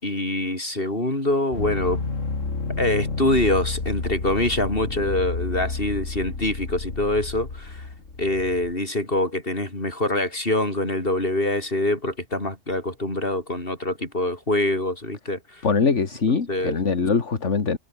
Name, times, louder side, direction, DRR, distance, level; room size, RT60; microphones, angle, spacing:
voice 1, 0.0-2.0 2.8-7.9 8.2-15.6 16.5-16.7, left 1 dB, 50° left, 6.5 m, -25 dB
sound 1, 1.5-8.7, left 3 dB, 90° left, 3.2 m, -30 dB
voice 2, 15.6-17.8, left 5 dB, 70° left, 2.3 m, -22 dB
omnidirectional pair, 1.3 m